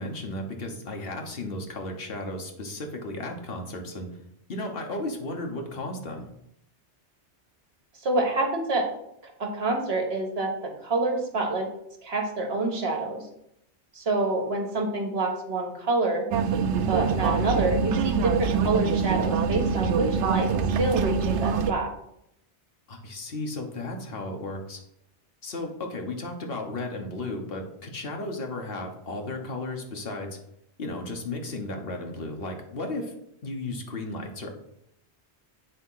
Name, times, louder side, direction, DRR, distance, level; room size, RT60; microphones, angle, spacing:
voice 1, 0.0-4.1 4.5-6.3 22.9-24.8 25.4-30.4 30.8-33.1 33.4-34.5, left 2 dB, 55° left, 2 dB, 1.4 m, -34 dB
voice 2, 8.0-8.9 9.2-11.7 12.0-13.2 13.9-16.3 16.9-20.5 20.8-21.9, right 2 dB, 65° right, 2 dB, 1.6 m, -27 dB
sound 1, 16.3-21.7, right 6 dB, 90° right, 1.0 m, -25 dB
8.6 x 3.6 x 5.6 m, 0.77 s
omnidirectional pair, 1.2 m